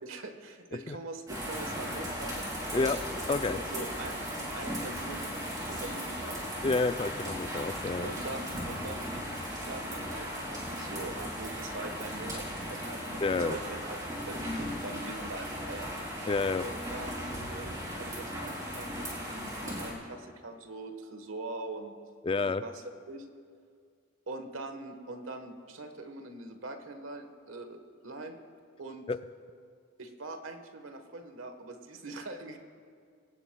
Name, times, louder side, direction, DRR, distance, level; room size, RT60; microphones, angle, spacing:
voice 1, 0.0-2.4 2.7-3.0 3.5-6.4 8.0-9.1 9.6-13.2 13.5-14.0 14.3-15.9 16.6-22.0 22.6-23.3 24.3-28.4 28.8-29.1 30.0-32.6, right 2 dB, 80° right, 6 dB, 1.3 m, -42 dB
sound 1, 1.3-19.9, equal, 20° right, 3.9 m, -37 dB
voice 2, 3.3-3.6 6.6-8.1 13.2-13.6 16.3-16.7 22.2-22.6 29.1-29.2, left 3 dB, 25° left, 12 dB, 0.3 m, -29 dB
23.5 x 18.0 x 2.3 m, 2.2 s
head